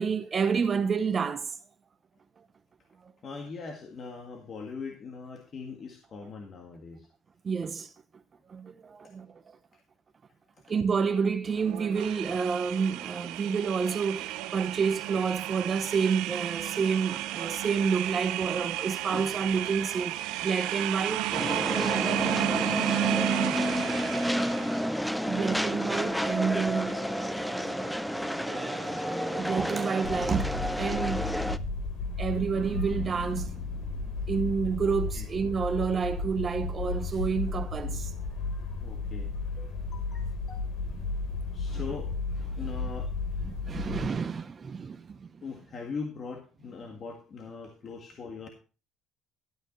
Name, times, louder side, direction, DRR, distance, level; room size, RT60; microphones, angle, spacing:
voice 1, 0.0-1.6 7.4-7.9 8.5-9.3 10.7-21.3 25.3-27.0 29.3-31.4 32.2-33.9 34.3-38.1 41.7-41.8 43.4-45.4, right 6 dB, 30° right, 0.8 m, -29 dB
voice 2, 3.2-7.1 19.1-19.3 23.7-25.6 35.1-35.3 38.8-40.7 41.5-42.1 42.6-43.1 45.4-48.5, left 5 dB, 40° left, 1.7 m, -42 dB
sound 1, 11.5-25.0 25.3-30.2, right 15 dB, 85° right, 0.6 m, -34 dB
sound 2, 21.3-31.6, equal, ahead, 0.5 m, -30 dB
sound 3, 30.0-44.1, left 3 dB, 70° left, 3.7 m, -34 dB
13.0 x 8.8 x 3.1 m
cardioid pair, 110°, 0 cm